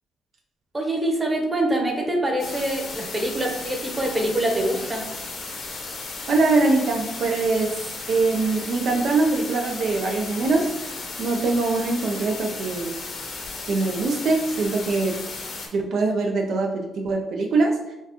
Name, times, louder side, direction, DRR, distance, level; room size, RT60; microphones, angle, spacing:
voice 1, 0.7-5.0, right 1 dB, 20° right, 2 dB, 0.9 m, -25 dB
sound 1, 2.4-15.7, left 3 dB, 60° left, 0.9 m, -35 dB
voice 2, 6.3-7.7 8.1-10.8 11.2-13.0 13.7-15.2 15.7-17.9, right 3 dB, 65° right, 1 dB, 0.4 m, -23 dB
4.4 x 2.3 x 2.8 m, 0.99 s
cardioid pair, 90°, 0 cm